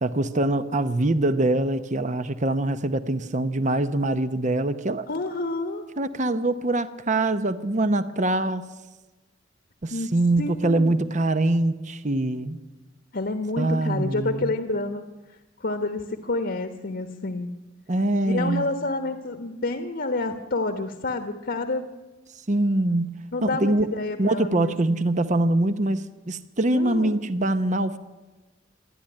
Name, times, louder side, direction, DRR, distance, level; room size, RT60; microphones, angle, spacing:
voice 1, 0.0-5.0 6.0-8.6 9.8-12.6 13.6-14.5 17.9-18.7 22.5-23.9 24.2-28.0, right 2 dB, 40° right, 12 dB, 0.9 m, -24 dB
voice 2, 5.1-5.8 9.9-10.9 13.1-15.0 15.6-17.5 18.2-21.9 23.3-24.9 26.7-27.1, left 2 dB, 60° left, 7 dB, 1.3 m, -29 dB
28.0 x 12.0 x 10.0 m, 1.2 s
head